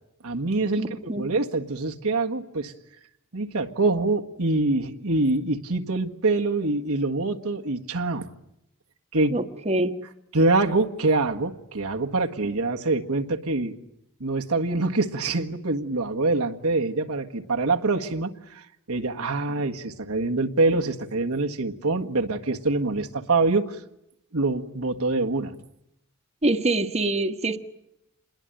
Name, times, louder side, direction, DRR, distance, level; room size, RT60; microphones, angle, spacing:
voice 1, 0.2-2.7 3.3-8.3 9.1-9.4 10.3-13.8 14.2-23.8 24.3-25.6, right 3 dB, 75° right, 3 dB, 1.7 m, -25 dB
voice 2, 0.7-1.3 9.3-9.9 26.4-27.6, right 2 dB, 30° right, 6 dB, 1.4 m, -25 dB
27.5 x 21.5 x 9.1 m, 0.83 s
head